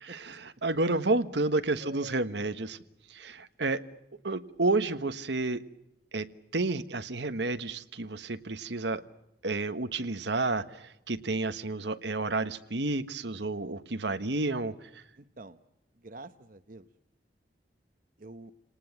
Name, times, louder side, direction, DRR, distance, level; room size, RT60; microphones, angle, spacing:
voice 1, 0.0-2.8 3.1-3.8 4.2-5.6 6.1-6.3 6.5-9.0 9.4-15.0, right 2 dB, 80° right, 10 dB, 1.4 m, -30 dB
voice 2, 1.8-2.3 15.2-15.6 15.9-16.9 18.2-18.5, right 2 dB, 50° right, 10 dB, 1.0 m, -47 dB
29.0 x 19.0 x 8.7 m, 0.89 s
head